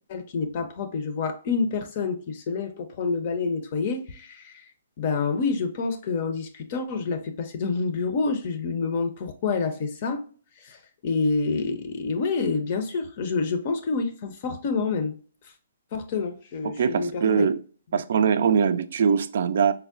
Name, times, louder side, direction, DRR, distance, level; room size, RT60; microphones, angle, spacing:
voice 1, 0.1-4.7 5.0-10.2 10.6-15.1 15.9-17.5 17.9-18.0, left 4 dB, 45° left, 0.6 m, -28 dB
voice 2, 16.8-17.6 17.9-19.7, right 6 dB, 60° right, 0.3 m, -22 dB
4.4 x 2.0 x 2.4 m
hypercardioid pair, 150°, 0 cm